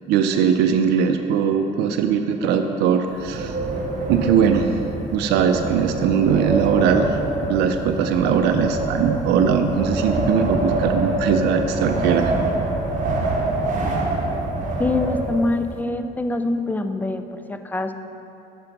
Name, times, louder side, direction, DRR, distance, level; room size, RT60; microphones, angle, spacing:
voice 1, 0.1-3.6 4.1-4.7 5.1-7.1 7.4-12.3, right 7 dB, 80° right, 6 dB, 0.4 m, -20 dB
Wind, 3.1-15.7, right 2 dB, 50° right, 1.3 m, -25 dB
voice 2, 14.8-17.9, left 2 dB, 10° left, 8 dB, 0.3 m, -24 dB
5.9 x 5.6 x 5.2 m, 2.9 s
cardioid pair, 110°, 17 cm